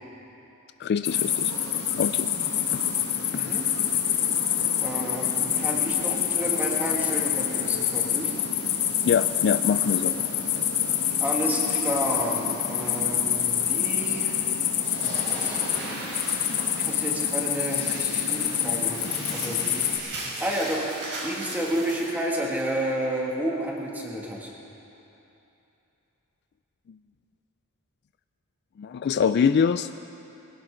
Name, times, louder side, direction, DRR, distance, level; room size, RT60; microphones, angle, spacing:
voice 1, 0.8-2.3 2.7-2.8 3.3-3.4 9.0-10.1 28.8-29.9, left 6 dB, 50° left, 12 dB, 0.3 m, -24 dB
sound 1, 1.0-20.0, left 9 dB, 80° left, 1.5 m, -26 dB
voice 2, 4.8-8.3 11.2-14.6 15.0-15.1 15.4-15.6 16.8-20.1 20.4-20.9 21.2-24.5, right 1 dB, 10° right, -3 dB, 2.3 m, -31 dB
sound 2, 14.8-22.1, right 2 dB, 55° right, 4.7 m, -37 dB
21.5 x 17.0 x 3.8 m, 2.9 s
head